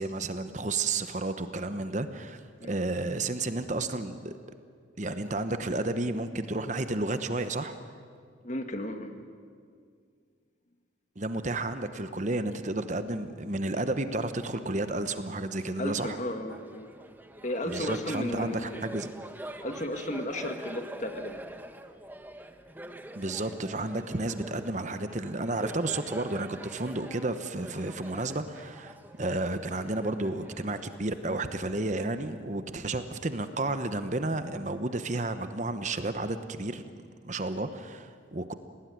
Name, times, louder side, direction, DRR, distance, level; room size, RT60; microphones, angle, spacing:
voice 1, 0.0-4.3 5.0-7.7 11.2-16.2 17.7-19.1 23.1-36.9 37.2-38.5, right 2 dB, 40° right, 10 dB, 1.0 m, -32 dB
voice 2, 8.4-9.1 15.8-16.9 17.4-18.9 19.6-21.4 27.7-27.8, left 1 dB, 40° left, 6 dB, 1.8 m, -34 dB
Laughter, 16.5-31.5, right 1 dB, 10° right, 1.1 m, -45 dB
28.0 x 18.5 x 9.5 m, 2.2 s
head